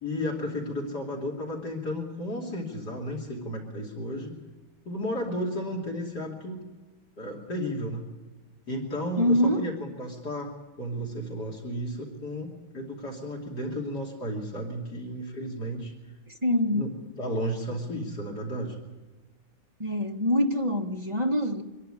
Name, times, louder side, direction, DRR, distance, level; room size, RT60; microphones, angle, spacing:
voice 1, 0.0-4.3 4.8-6.6 7.2-8.0 8.7-12.5 12.7-15.9 16.7-16.9 17.2-18.8, equal, 55° left, 3.4 m, -33 dB
voice 2, 9.2-9.6 16.4-16.9 19.8-21.6, left 1 dB, 20° right, 1.2 m, -24 dB
25.5 x 11.5 x 9.9 m
omnidirectional pair, 2.2 m